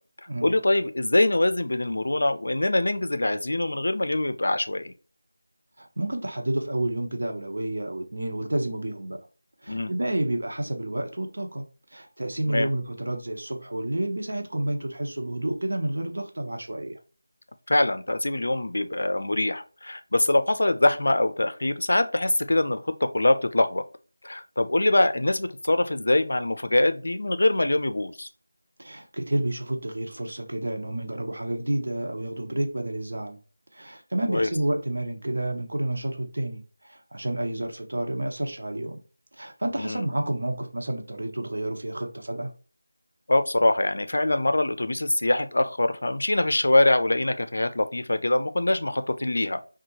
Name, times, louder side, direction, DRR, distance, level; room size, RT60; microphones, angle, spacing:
voice 1, 0.4-4.9 9.7-9.9 12.5-12.7 17.7-23.8 24.2-28.3 34.3-34.5 39.8-40.1 43.3-49.6, left 2 dB, 65° left, 0.4 m, -23 dB
voice 2, 5.8-9.2 9.6-17.0 28.8-33.4 33.7-39.0 39.3-42.5, right 1 dB, 65° right, 0.7 m, -30 dB
2.7 x 2.3 x 2.9 m
figure-of-eight pair, 175°, 0 cm